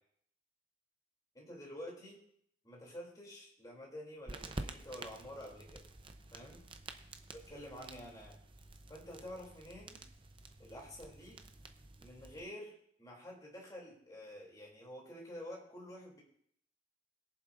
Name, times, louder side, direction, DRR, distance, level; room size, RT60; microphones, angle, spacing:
voice 1, 1.3-2.2 2.6-5.8 6.3-6.6 7.3-8.4 8.9-10.0 10.6-11.4 12.0-16.2, equal, 20° left, -2 dB, 3.0 m, -49 dB
sound 1, 4.3-12.4, right 2 dB, 30° right, 0.7 m, -50 dB
22.0 x 7.3 x 2.6 m, 0.67 s
head